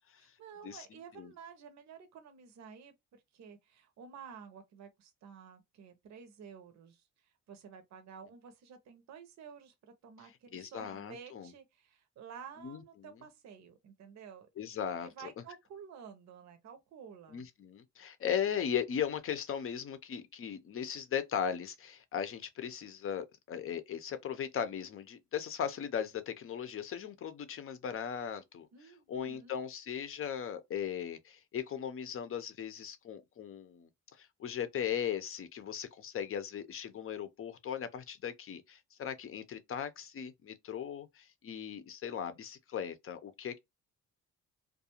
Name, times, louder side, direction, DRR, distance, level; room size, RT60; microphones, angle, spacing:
voice 1, 0.2-14.5 15.0-17.5 28.7-29.6, right 7 dB, 65° right, 0.7 m, -52 dB
voice 2, 10.5-11.5 12.6-12.8 14.6-15.3 17.3-28.7 29.1-43.6, left 8 dB, 45° left, 0.6 m, -38 dB
2.4 x 2.3 x 2.8 m
cardioid pair, 90°, 30 cm